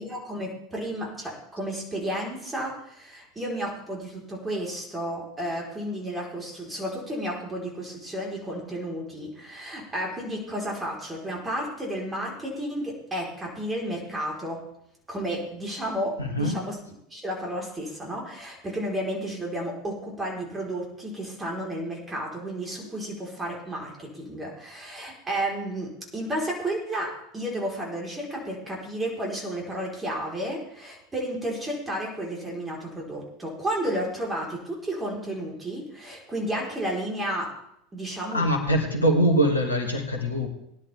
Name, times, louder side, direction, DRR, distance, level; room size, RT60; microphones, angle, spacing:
voice 1, 0.0-14.6 15.1-16.8 17.1-37.5 37.9-38.4, right 1 dB, 15° right, -1 dB, 4.1 m, -32 dB
voice 2, 16.2-16.6 38.3-40.5, equal, 85° left, 3 dB, 2.0 m, -23 dB
19.5 x 11.0 x 3.5 m, 0.77 s
figure-of-eight pair, 75°, 0 cm